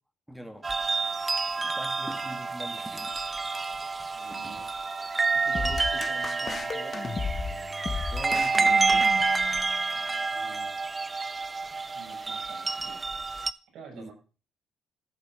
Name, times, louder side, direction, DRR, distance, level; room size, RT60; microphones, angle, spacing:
voice 1, 0.3-0.7 1.6-3.2 4.3-4.6 8.1-9.3 13.9-14.1, equal, 5° right, 1.7 m, -43 dB
sound 1, 0.6-13.5, right 4 dB, 25° right, 0.6 m, -28 dB
voice 2, 2.1-2.5 4.1-4.7 5.3-7.0 9.9-10.8 11.9-13.2 13.7-14.1, right 4 dB, 85° right, 6.7 m, -47 dB
sound 2, 5.5-9.7, left 5 dB, 40° left, 1.3 m, -34 dB
12.5 x 7.4 x 6.0 m
cardioid pair, 90°, 0 cm